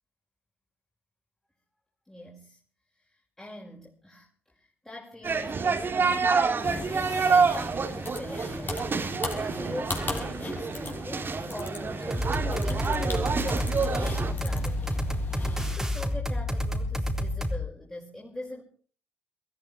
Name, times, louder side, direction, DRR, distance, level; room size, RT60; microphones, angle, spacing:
voice 1, 2.1-2.6 3.0-12.3 12.6-15.0 15.4-18.6, left 1 dB, 10° left, -3 dB, 6.0 m, -43 dB
sound 1, 5.2-14.3, right 5 dB, 40° right, 2.6 m, -28 dB
sound 2, 6.6-15.7, left 3 dB, 35° left, 6.1 m, -38 dB
sound 3, 12.1-17.6, equal, 5° right, 3.7 m, -29 dB
22.5 x 14.0 x 4.5 m, 0.44 s
hypercardioid pair, 45°, 5 cm